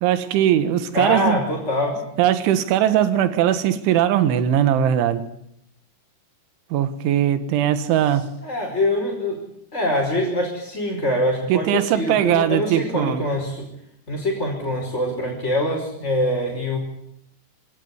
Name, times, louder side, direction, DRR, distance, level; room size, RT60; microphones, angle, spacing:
voice 1, 0.0-1.4 2.2-5.2 6.7-8.3 11.5-13.2, right 10 dB, 80° right, 12 dB, 3.9 m, -20 dB
voice 2, 0.9-2.0 8.4-9.4 9.7-13.6 14.1-16.8, left 1 dB, 15° left, -1 dB, 5.0 m, -24 dB
25.5 x 19.0 x 9.7 m, 0.73 s
omnidirectional pair, 5.4 m